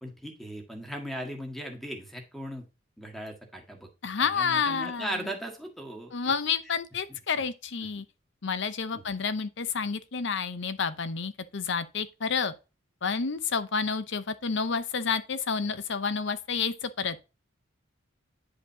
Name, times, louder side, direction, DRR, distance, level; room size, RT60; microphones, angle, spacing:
voice 1, 0.0-2.7 3.0-3.9 4.2-6.1 7.1-7.2 8.9-9.0, right 1 dB, ahead, 1.7 m, -38 dB
voice 2, 4.0-5.2 6.1-8.0 8.4-12.5 13.0-17.3, left 5 dB, 65° left, 0.7 m, -30 dB
10.0 x 5.1 x 2.8 m
head